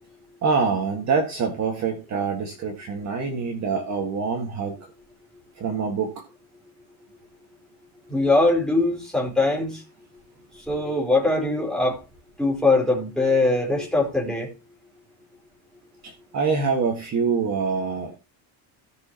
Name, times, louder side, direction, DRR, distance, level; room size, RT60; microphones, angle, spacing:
voice 1, 0.4-4.8 5.6-6.2 16.0-18.2, right 5 dB, 35° right, 2 dB, 1.7 m, -25 dB
voice 2, 8.1-9.8 10.5-12.0 12.4-14.5, left 2 dB, ahead, -4 dB, 4.1 m, -22 dB
17.5 x 6.5 x 2.9 m, 0.28 s
cardioid pair, 180°, 48 cm